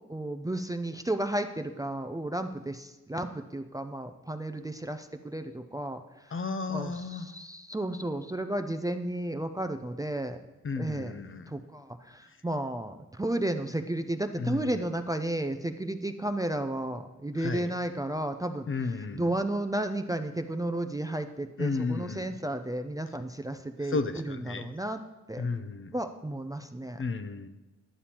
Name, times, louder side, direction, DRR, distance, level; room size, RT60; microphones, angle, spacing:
voice 1, 0.1-6.4 6.7-10.4 10.8-11.2 11.5-25.0 25.3-25.4 25.9-27.0, right 1 dB, 10° right, 7 dB, 0.4 m, -33 dB
voice 2, 6.3-7.3 10.6-11.5 14.4-14.8 17.4-17.7 18.7-19.3 21.6-22.3 23.9-24.7 25.4-25.9 27.0-27.5, left 4 dB, 45° left, 10 dB, 0.6 m, -33 dB
11.0 x 6.8 x 2.9 m, 1.1 s
cardioid pair, 65°, 30 cm